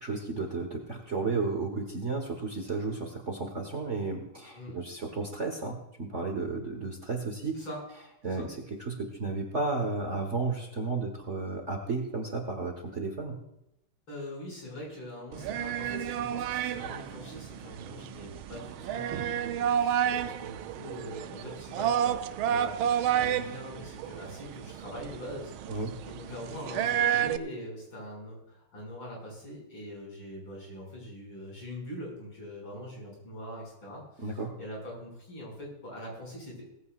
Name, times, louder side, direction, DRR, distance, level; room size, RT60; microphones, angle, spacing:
voice 1, 0.0-7.6 8.2-13.4 25.7-25.9 34.2-34.5, right 3 dB, 35° right, 2 dB, 1.4 m, -33 dB
voice 2, 14.1-25.5 26.1-36.7, left 1 dB, 65° left, -2 dB, 7.0 m, -43 dB
sound 1, 15.3-27.4, right 9 dB, 75° right, 1.4 m, -30 dB
18.0 x 15.0 x 2.5 m, 0.82 s
omnidirectional pair, 2.4 m